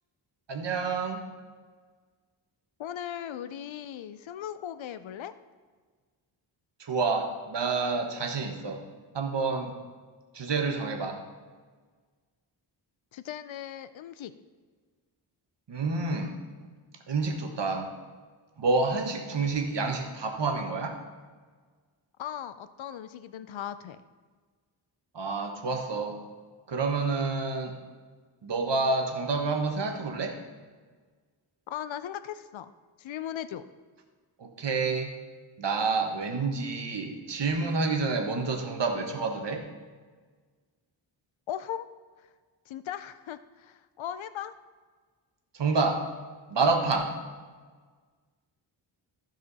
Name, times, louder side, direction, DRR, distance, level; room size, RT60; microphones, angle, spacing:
voice 1, 0.5-1.2 6.8-8.8 9.1-9.8 10.3-11.2 15.7-16.4 17.1-17.9 18.6-21.0 25.1-26.2 26.7-27.7 28.4-30.4 34.4-35.1 35.6-39.7 45.5-46.1 46.5-47.2, right 4 dB, 55° right, 4 dB, 1.5 m, -28 dB
voice 2, 2.8-5.3 13.1-14.3 22.2-24.0 31.7-32.7 33.0-33.6 41.5-41.9 42.7-44.5, left 10 dB, 70° left, 13 dB, 0.6 m, -38 dB
15.0 x 5.0 x 4.2 m, 1.5 s
cardioid pair, 65°, 49 cm